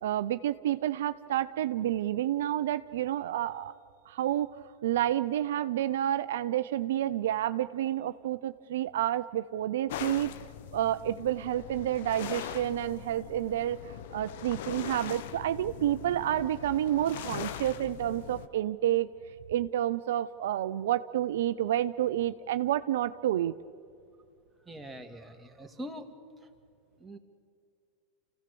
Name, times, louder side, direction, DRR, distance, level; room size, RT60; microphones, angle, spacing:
voice 1, 0.0-3.7 4.1-10.3 10.7-19.1 19.5-23.6, right 12 dB, 75° right, 12 dB, 0.5 m, -29 dB
sound 1, 9.9-18.5, left 11 dB, 70° left, 0.9 m, -41 dB
voice 2, 24.7-26.1 26.4-26.5 27.0-27.2, equal, 10° right, 3 dB, 2.2 m, -43 dB
27.5 x 16.0 x 6.9 m, 2.4 s
hypercardioid pair, 100°, 0 cm